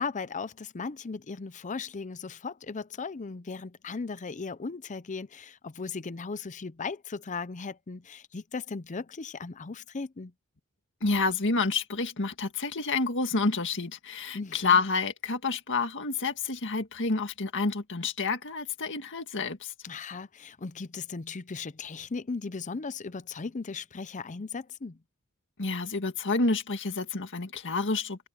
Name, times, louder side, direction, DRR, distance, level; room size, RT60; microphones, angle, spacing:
voice 1, 0.0-10.3 14.3-14.8 19.8-25.0, left 4 dB, 35° left, 0.6 m, -37 dB
voice 2, 11.0-19.7 25.6-28.3, left 4 dB, 55° left, 2.0 m, -29 dB
head